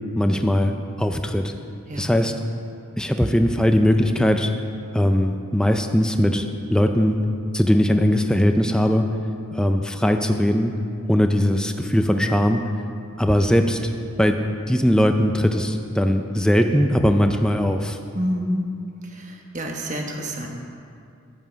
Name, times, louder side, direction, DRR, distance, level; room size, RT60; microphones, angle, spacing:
voice 1, 0.2-1.5 2.0-2.3 3.0-4.5 4.9-6.5 6.7-7.2 7.5-9.0 9.5-10.7 11.1-12.6 13.2-13.9 14.2-14.4 14.7-18.0, equal, 5° left, 5 dB, 0.4 m, -20 dB
voice 2, 18.1-18.7 19.0-20.5, equal, 35° right, 1 dB, 1.2 m, -28 dB
11.0 x 9.2 x 5.1 m, 2.4 s
head